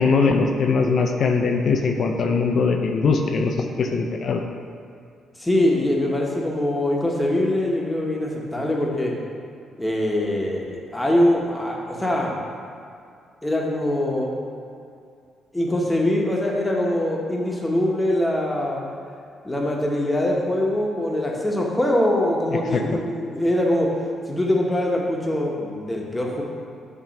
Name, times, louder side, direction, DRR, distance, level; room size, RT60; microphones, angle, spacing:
voice 1, 0.0-4.4 22.7-22.8, left 4 dB, 55° left, 4 dB, 0.5 m, -21 dB
voice 2, 5.4-9.1 9.8-12.3 13.4-14.3 15.5-18.8 19.4-23.9 24.3-26.4, left 1 dB, 10° left, -2 dB, 1.1 m, -23 dB
7.2 x 3.0 x 5.3 m, 2.4 s
cardioid pair, 90°, 0 cm